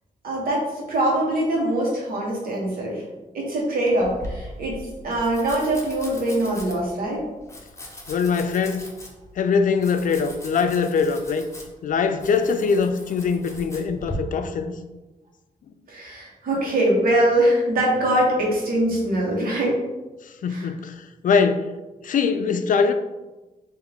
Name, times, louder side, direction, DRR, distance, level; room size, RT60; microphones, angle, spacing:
voice 1, 0.2-3.0 3.3-7.3 15.9-19.8 20.5-20.7, right 1 dB, 80° right, 1.2 m, -23 dB
Domestic sounds home sounds, 4.0-14.2, left 1 dB, 20° left, 0.8 m, -40 dB
voice 2, 8.1-8.8 9.4-11.5 11.8-14.7 20.4-21.7 22.0-22.9, left 5 dB, 65° left, 0.4 m, -22 dB
3.5 x 2.6 x 3.4 m
cardioid pair, 70°, 15 cm